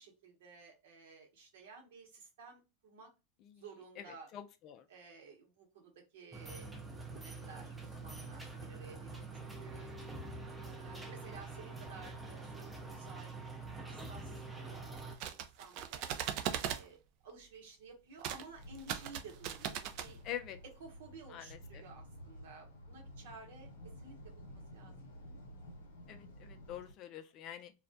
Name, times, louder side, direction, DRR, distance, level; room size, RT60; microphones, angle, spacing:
voice 1, 0.0-3.1 3.6-4.3 4.9-6.7 7.1-9.9 10.6-16.1 16.6-17.0 17.2-20.2 20.8-23.7 24.0-24.9, right 4 dB, 70° right, 0.9 m, -54 dB
voice 2, 4.0-4.9 8.3-8.4 20.2-20.6 21.3-21.8 26.1-27.7, left 10 dB, 45° left, 0.4 m, -46 dB
sound 1, 6.3-15.2, right 3 dB, 5° right, 0.6 m, -46 dB
sound 2, 15.0-16.8 18.2-18.4 18.7-20.1, right 10 dB, 55° right, 0.4 m, -39 dB
sound 3, 18.5-26.9, equal, 80° left, 0.8 m, -53 dB
2.3 x 2.1 x 2.6 m
hypercardioid pair, 105°, 0 cm